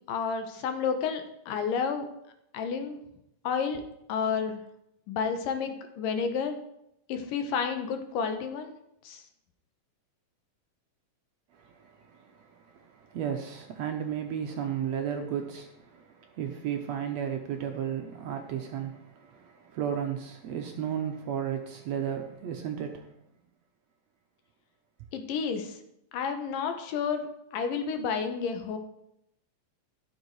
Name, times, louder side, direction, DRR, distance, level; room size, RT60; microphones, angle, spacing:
voice 1, 0.1-2.1 2.5-3.0 3.4-3.8 4.1-4.6 5.1-6.6 7.1-8.8 9.0-9.2 25.1-25.8 26.1-28.8, left 6 dB, 85° left, 2.8 m, -30 dB
voice 2, 11.6-12.5 12.7-23.1, right 8 dB, 70° right, 1.7 m, -34 dB
12.5 x 7.4 x 4.8 m
omnidirectional pair, 3.8 m